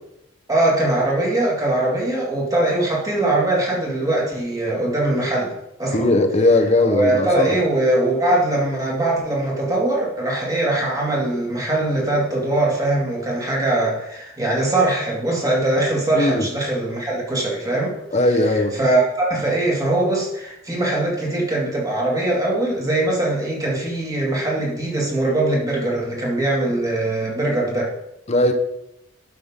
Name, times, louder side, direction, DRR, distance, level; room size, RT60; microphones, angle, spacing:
voice 1, 0.5-5.5 5.8-6.1 6.8-17.9 18.5-27.9, right 2 dB, 20° right, 2.1 m, -21 dB
voice 2, 5.9-7.5 16.2-16.5 18.1-18.8 28.3-28.5, left 2 dB, 35° left, 0.9 m, -18 dB
12.0 x 5.8 x 3.7 m
head